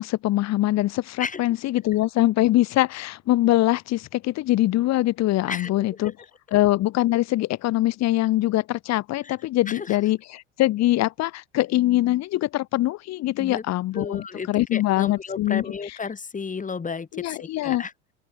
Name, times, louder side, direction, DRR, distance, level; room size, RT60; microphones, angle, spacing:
voice 1, 0.0-6.1 6.5-16.0 17.1-17.8, left 16 dB, 45° left, 2.0 m, -23 dB
voice 2, 13.9-17.9, left 5 dB, 20° left, 4.8 m, -33 dB
open air
hypercardioid pair, 85°, 37 cm